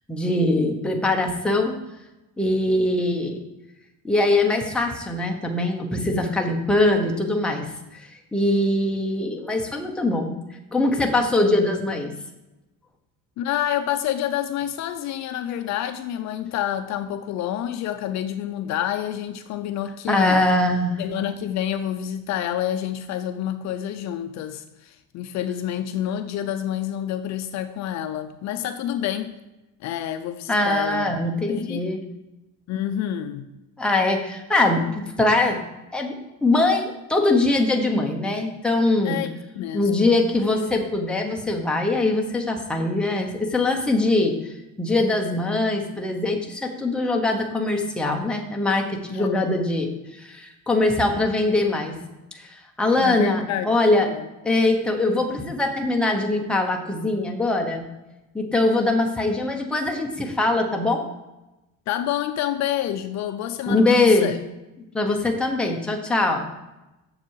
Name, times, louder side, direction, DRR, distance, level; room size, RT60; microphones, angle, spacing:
voice 1, 0.1-1.8 2.4-3.4 4.0-7.7 8.0-10.4 10.7-12.1 20.1-21.0 30.5-32.1 33.8-35.6 35.9-36.1 36.4-39.2 39.7-44.4 44.8-52.0 52.3-54.1 54.4-57.9 58.3-61.1 63.7-64.3 64.9-66.5, left 2 dB, 5° left, 1 dB, 0.7 m, -22 dB
voice 2, 13.4-20.4 21.0-29.4 29.8-31.1 31.5-31.9 32.7-33.5 39.0-39.3 39.6-39.9 49.1-49.6 52.9-53.7 54.0-54.3 61.9-64.4, left 11 dB, 55° left, 8 dB, 0.5 m, -28 dB
7.3 x 6.9 x 4.6 m, 0.98 s
cardioid pair, 165°, 34 cm